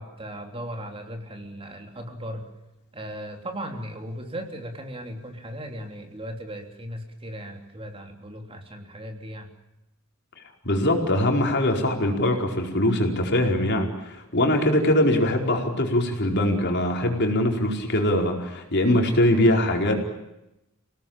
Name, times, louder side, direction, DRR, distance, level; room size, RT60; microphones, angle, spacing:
voice 1, 0.0-2.5 2.9-9.5, equal, 25° right, 4 dB, 3.3 m, -37 dB
voice 2, 10.6-19.9, left 1 dB, 55° left, 2 dB, 4.8 m, -22 dB
28.5 x 18.5 x 8.9 m, 0.92 s
head